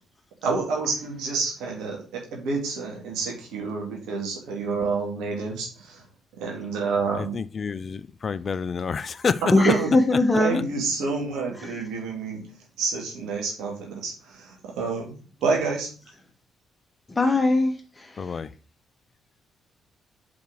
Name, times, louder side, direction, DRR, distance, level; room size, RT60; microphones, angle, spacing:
voice 1, 0.4-6.0 6.4-7.4 9.6-9.9 10.4-12.5 12.8-15.9, right 4 dB, 70° right, 2.2 m, -28 dB
voice 2, 7.2-9.4 10.5-10.6 18.2-18.5, left 5 dB, 45° left, 0.5 m, -29 dB
voice 3, 9.5-10.7 11.6-11.7 17.1-18.4, left 2 dB, 25° left, 1.7 m, -21 dB
5.3 x 5.2 x 6.3 m
hypercardioid pair, 45°, 0 cm